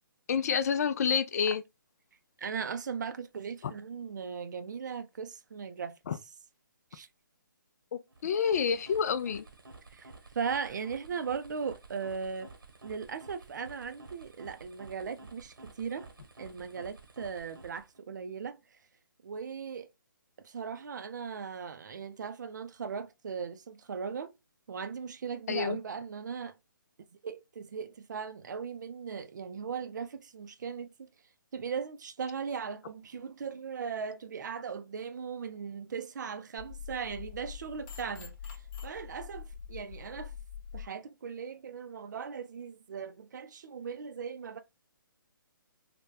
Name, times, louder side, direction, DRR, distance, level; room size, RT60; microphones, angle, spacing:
voice 1, 0.3-1.6 6.1-6.2 7.9-9.4 25.5-25.8, left 7 dB, 50° left, 0.4 m, -28 dB
voice 2, 2.4-6.0 6.9-7.1 9.9-12.5 12.8-16.1 16.4-18.8 19.2-19.9 20.4-24.3 24.7-26.6 27.2-31.1 31.5-40.3 40.7-44.6, right 6 dB, 60° right, 0.5 m, -38 dB
sound 1, 8.1-18.0, right 3 dB, 80° right, 0.9 m, -52 dB
sound 2, 36.6-40.9, left 7 dB, 30° left, 0.8 m, -44 dB
3.3 x 2.2 x 2.2 m
hypercardioid pair, 145°, 11 cm